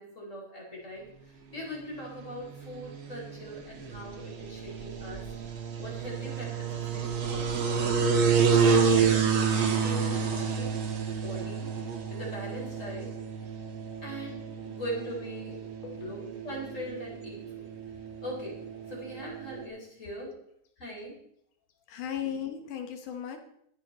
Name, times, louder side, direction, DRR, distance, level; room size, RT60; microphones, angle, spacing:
voice 1, 0.0-5.2 5.8-7.9 8.3-10.7 11.1-11.7 12.1-13.1 14.0-15.6 15.9-16.2 16.4-17.4 18.2-18.6 18.9-20.3 20.8-21.1, equal, 20° left, -3 dB, 3.8 m, -41 dB
sound 1, 1.6-19.6, right 6 dB, 90° right, 1.1 m, -30 dB
voice 2, 15.5-16.6 20.3-20.4 21.9-23.4, left 9 dB, 70° left, 6 dB, 2.0 m, -38 dB
21.0 x 7.3 x 4.2 m, 0.70 s
omnidirectional pair, 4.9 m